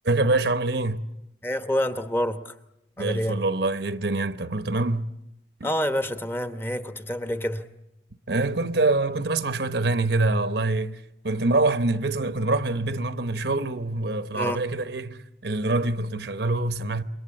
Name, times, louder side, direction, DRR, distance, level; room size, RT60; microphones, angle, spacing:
voice 1, 0.0-1.0 3.0-5.1 5.6-5.7 8.3-17.0, right 2 dB, 65° right, 0.9 m, -25 dB
voice 2, 1.4-2.5 3.0-3.4 5.6-7.6 14.3-14.6, equal, 10° left, 1.0 m, -27 dB
28.5 x 23.0 x 8.6 m
head